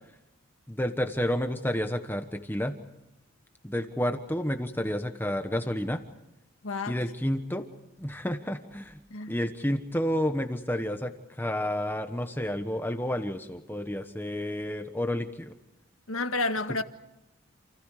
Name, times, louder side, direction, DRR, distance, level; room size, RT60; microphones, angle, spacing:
voice 1, 0.7-2.8 3.6-6.0 6.9-7.6 8.0-9.0 9.3-11.1 11.4-15.5, equal, 10° left, 1.3 m, -30 dB
voice 2, 6.6-7.0 9.1-9.3 16.1-16.8, left 3 dB, 75° left, 1.8 m, -30 dB
29.0 x 29.0 x 5.0 m
head